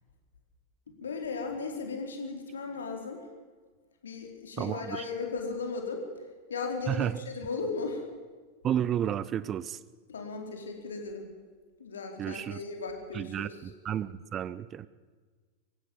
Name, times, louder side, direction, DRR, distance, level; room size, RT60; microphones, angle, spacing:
voice 1, 1.0-3.2 4.0-6.1 6.5-8.1 10.1-11.3 11.8-13.6, left 4 dB, 70° left, 3 dB, 4.4 m, -36 dB
voice 2, 4.6-5.0 6.9-7.2 8.6-9.8 12.2-12.6 13.1-14.9, right 10 dB, 30° right, 18 dB, 0.7 m, -32 dB
25.0 x 16.0 x 7.4 m, 1.4 s
figure-of-eight pair, 90°, 0 cm